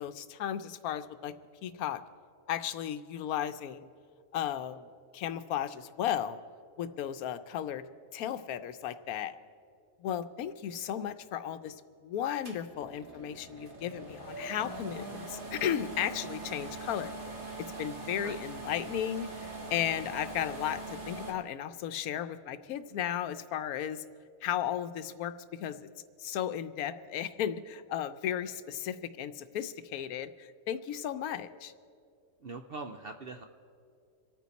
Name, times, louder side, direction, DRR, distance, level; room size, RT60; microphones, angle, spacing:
voice 1, 0.0-1.3 1.6-2.0 2.5-3.9 4.3-4.9 5.1-6.4 6.8-7.8 8.1-9.3 10.0-17.1 17.8-24.0 24.4-25.9 26.2-31.7, left 10 dB, 85° left, 11 dB, 1.1 m, -35 dB
sound 1, 12.4-21.3, right 2 dB, 35° right, 1.8 m, -42 dB
voice 2, 32.4-33.4, right 3 dB, 55° right, 6 dB, 0.7 m, -42 dB
26.5 x 9.2 x 4.1 m, 2.4 s
omnidirectional pair, 1.5 m